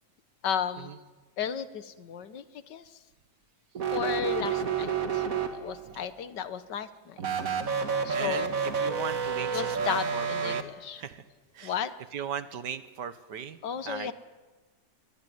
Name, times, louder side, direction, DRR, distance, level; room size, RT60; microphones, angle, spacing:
voice 1, 0.4-0.9 1.4-2.4 2.7-2.8 3.9-5.2 5.5-7.2 8.0-8.6 9.5-11.0 11.6-11.9 13.6-14.1, left 8 dB, 85° left, 13 dB, 1.8 m, -34 dB
sound 1, 3.7-5.9 7.2-10.6, right 6 dB, 55° right, 2.0 m, -30 dB
voice 2, 8.1-8.5 8.8-10.7 11.0-11.2 11.6-11.7 12.1-13.6 13.8-14.1, right 8 dB, 80° right, 12 dB, 1.8 m, -37 dB
22.0 x 21.0 x 9.5 m, 1.3 s
omnidirectional pair, 1.8 m